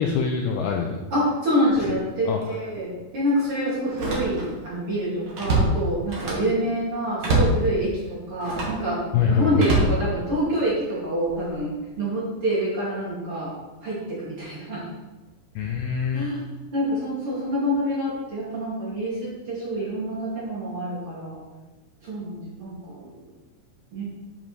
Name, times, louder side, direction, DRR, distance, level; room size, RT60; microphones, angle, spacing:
voice 1, 0.0-1.0 2.3-2.4 9.1-9.7 15.6-16.3, left 6 dB, 85° left, 1 dB, 2.2 m, -24 dB
voice 2, 1.1-9.0 9.3-13.5 13.8-14.8 16.1-16.4 16.7-21.4 22.0-23.1 23.9-24.0, equal, 40° right, -8 dB, 2.4 m, -26 dB
Slam, 1.7-2.0 2.4-2.5 3.9-4.7 5.0-6.6 7.2-7.6 8.4-8.8 9.6-10.6 11.2-11.5, right 2 dB, 60° right, 1.3 m, -25 dB
10.5 x 5.2 x 4.0 m, 1.2 s
omnidirectional pair, 5.0 m